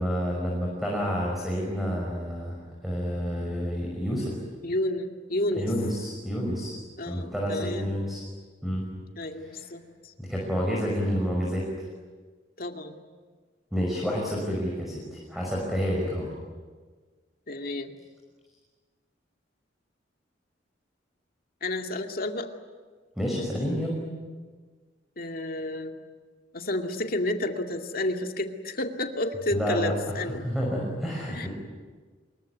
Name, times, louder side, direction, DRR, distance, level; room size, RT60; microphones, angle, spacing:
voice 1, 0.0-4.4 5.6-6.7 7.1-8.2 8.6-8.9 9.4-9.6 10.2-11.6 13.7-16.3 23.2-24.0 29.5-29.9 30.4-31.5, equal, ahead, -2 dB, 5.8 m, -29 dB
voice 2, 4.6-5.7 7.0-7.9 9.2-10.1 12.6-13.0 17.5-17.9 21.6-22.5 25.2-25.9 26.5-30.5 31.3-31.5, left 1 dB, 55° left, 4 dB, 2.3 m, -31 dB
26.5 x 22.5 x 9.5 m, 1.4 s
head